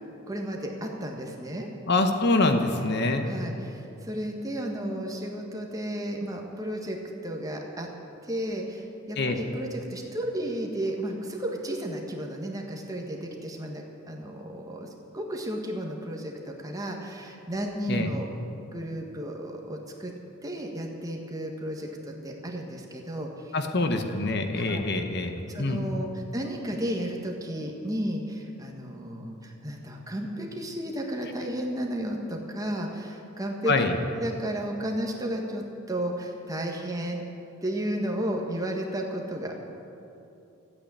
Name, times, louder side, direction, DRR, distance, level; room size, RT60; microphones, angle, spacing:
voice 1, 0.3-1.7 3.2-7.0 7.2-7.9 8.3-14.9 15.1-18.2 18.7-20.1 20.4-23.3 24.5-24.8 25.4-33.7 34.1-37.2 37.6-39.5, right 1 dB, 15° right, 1 dB, 1.5 m, -33 dB
voice 2, 1.9-3.3 9.2-9.3 17.9-18.1 23.5-25.8 33.7-33.9, left 2 dB, 50° left, 6 dB, 1.1 m, -25 dB
13.5 x 8.8 x 8.8 m, 2.8 s
head